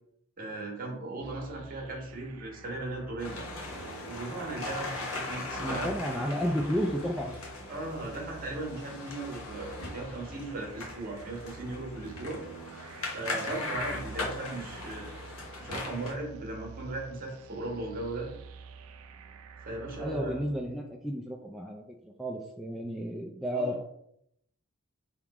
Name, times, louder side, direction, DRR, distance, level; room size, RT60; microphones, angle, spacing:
voice 1, 0.4-3.5 4.0-5.9 7.7-12.4 13.1-15.1 15.6-18.3 19.6-20.4 23.5-23.8, right 2 dB, 40° right, 0 dB, 1.3 m, -37 dB
sound 1, 1.2-20.6, right 5 dB, 85° right, 0.4 m, -48 dB
sound 2, 3.2-16.1, left 2 dB, 80° left, 1.1 m, -39 dB
voice 2, 5.6-7.4 20.0-23.8, equal, ahead, -1 dB, 0.3 m, -32 dB
3.6 x 3.0 x 4.7 m, 0.73 s
head